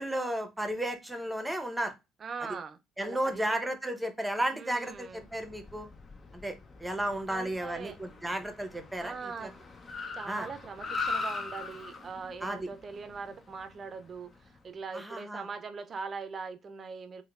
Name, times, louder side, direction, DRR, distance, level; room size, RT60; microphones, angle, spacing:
voice 1, 0.0-1.9 3.0-5.9 6.3-6.5 6.8-9.1 9.4-9.5 10.3-10.5 12.4-12.7 14.9-15.4, right 1 dB, 5° right, 0.8 m, -33 dB
voice 2, 2.2-3.5 4.5-5.3 7.3-8.0 9.0-9.5 10.1-17.2, right 5 dB, 40° right, 0.5 m, -41 dB
Car, 5.0-14.6, left 3 dB, 35° left, 0.6 m, -41 dB
4.3 x 2.2 x 2.4 m
hypercardioid pair, 60°, 0 cm